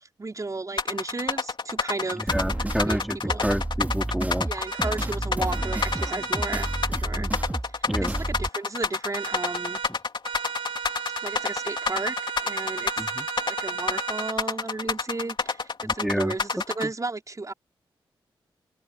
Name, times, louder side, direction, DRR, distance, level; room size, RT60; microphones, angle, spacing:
voice 1, 0.0-2.3 2.8-3.0 3.2-3.6 4.5-7.3 7.7-9.8 11.2-13.0 13.6-17.5, right 3 dB, 35° right, 5.0 m, -34 dB
sound 1, 0.8-16.8, left 5 dB, 60° left, 3.4 m, -28 dB
voice 2, 2.3-4.5 7.1-7.4 7.9-8.2 13.0-13.3 15.8-16.3 16.8-16.9, equal, ahead, 4.0 m, -29 dB
sound 2, 2.3-8.5, right 1 dB, 15° right, 3.3 m, -30 dB
sound 3, 4.7-4.9 5.5-6.9 9.1-9.9 10.2-14.4, right 7 dB, 75° right, 3.0 m, -34 dB
open air
cardioid pair, 45°, 9 cm